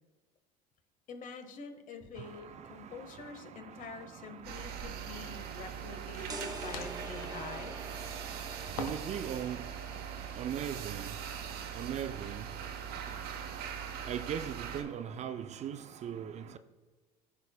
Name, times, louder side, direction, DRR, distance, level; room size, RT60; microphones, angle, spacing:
voice 1, 1.1-7.8, left 4 dB, 45° left, 1.2 m, -46 dB
voice 2, 2.2-16.6, right 9 dB, 40° right, 0.4 m, -42 dB
sound 1, 3.8-4.0 6.1-7.5 8.8-9.3 9.5-10.4, left 4 dB, 80° left, 0.8 m, -45 dB
sound 2, 4.4-14.8, right 8 dB, 55° right, 1.0 m, -42 dB
sound 3, 6.3-11.9, right 3 dB, 20° right, 0.9 m, -47 dB
14.5 x 4.9 x 2.2 m
hypercardioid pair, 75°, 18 cm